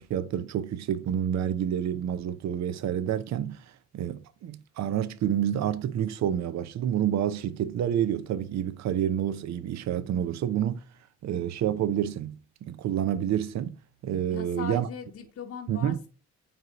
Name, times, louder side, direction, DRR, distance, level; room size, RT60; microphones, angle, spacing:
voice 1, 0.0-10.8 11.2-13.8 14.0-14.9 15.7-16.0, right 10 dB, 65° right, 0.6 m, -28 dB
voice 2, 14.3-16.1, left 6 dB, 50° left, 0.9 m, -39 dB
8.8 x 3.3 x 3.9 m
cardioid pair, 90°, 30 cm